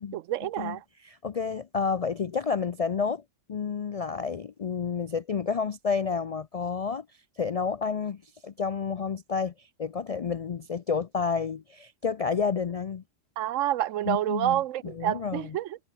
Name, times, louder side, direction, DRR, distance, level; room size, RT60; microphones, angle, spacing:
voice 1, 0.1-0.8 13.4-15.8, right 13 dB, 80° right, 1.0 m, -28 dB
voice 2, 1.0-3.2 3.5-7.1 7.4-13.0 14.1-15.6, left 5 dB, 60° left, 0.3 m, -30 dB
omnidirectional pair, 1.3 m